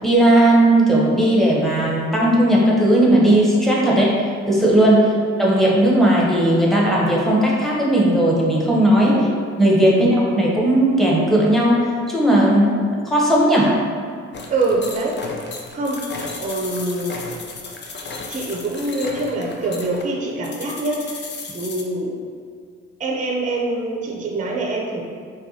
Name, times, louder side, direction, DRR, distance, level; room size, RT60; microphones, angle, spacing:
voice 1, 0.0-4.1 4.5-5.0 5.4-9.2 9.6-12.7 13.1-13.7, right 1 dB, ahead, -5 dB, 0.9 m, -16 dB
voice 2, 9.9-10.2 14.5-15.2 15.7-17.2 18.3-22.2 23.0-25.0, right 2 dB, 25° right, -1 dB, 0.5 m, -25 dB
sound 1, 14.3-21.8, left 3 dB, 35° left, 0.5 m, -34 dB
4.5 x 2.3 x 2.7 m, 2.1 s
supercardioid pair, 65°, 32 cm